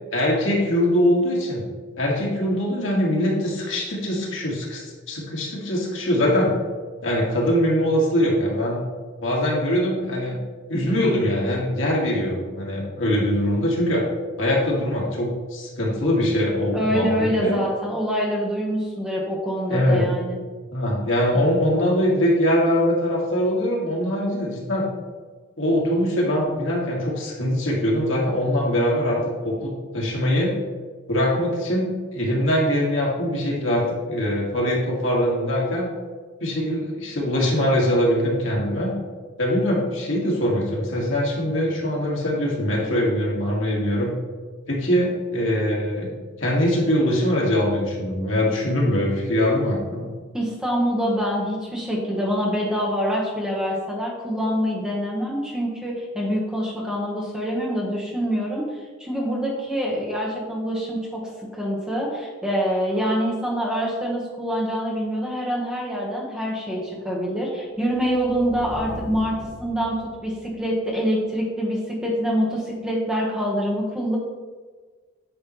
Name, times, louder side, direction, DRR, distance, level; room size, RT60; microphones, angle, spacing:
voice 1, 0.1-1.6 2.0-6.5 7.0-8.8 9.2-10.4 10.7-14.0 14.4-17.6 19.7-20.2 20.7-24.9 25.6-29.2 29.4-30.6 31.1-35.9 36.4-38.9 39.4-44.1 44.7-46.1 46.4-50.0, equal, 75° left, -3 dB, 1.8 m, -22 dB
voice 2, 16.7-20.4 50.3-58.6 59.0-61.2 61.5-69.3 69.6-69.9 70.2-74.2, equal, 5° right, -4 dB, 1.2 m, -25 dB
sound 1, 67.8-70.7, equal, 45° right, 1.6 m, -39 dB
9.0 x 5.4 x 3.1 m, 1.4 s
head